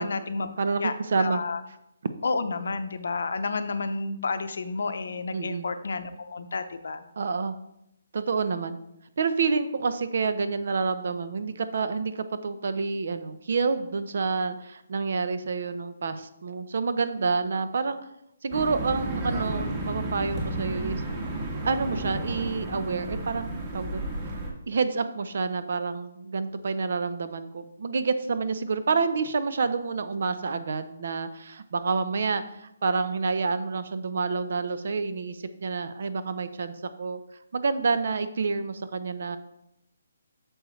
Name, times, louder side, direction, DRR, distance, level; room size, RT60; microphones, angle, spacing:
voice 1, 0.0-0.5 0.8-1.6 2.2-7.0, left 4 dB, 70° left, 10 dB, 0.7 m, -30 dB
voice 2, 0.6-1.4 5.3-5.6 7.2-7.6 8.1-8.8 9.2-18.0 18.4-21.0 21.6-24.1 24.7-37.2 37.5-39.4, right 4 dB, 60° right, 11 dB, 0.7 m, -28 dB
sound 1, 18.5-24.5, right 1 dB, 20° right, 1.5 m, -32 dB
8.8 x 6.4 x 3.2 m, 0.82 s
hypercardioid pair, 165°, 0 cm